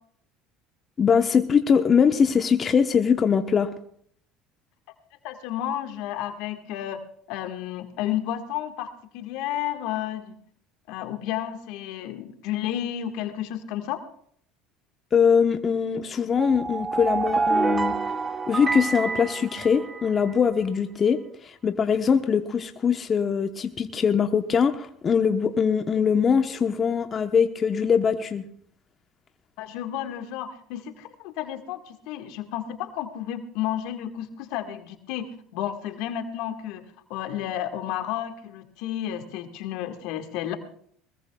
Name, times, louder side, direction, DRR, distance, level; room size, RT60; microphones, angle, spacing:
voice 1, 1.0-3.7 15.1-17.9 18.5-28.4, left 6 dB, 35° left, 6 dB, 1.0 m, -22 dB
voice 2, 5.2-7.0 7.3-10.3 10.9-14.0 29.6-36.8 37.1-40.6, left 11 dB, 70° left, 7 dB, 1.6 m, -32 dB
sound 1, 16.3-20.3, right 3 dB, 20° right, 1.4 m, -27 dB
21.5 x 21.0 x 2.3 m, 0.63 s
hypercardioid pair, 80°, 0 cm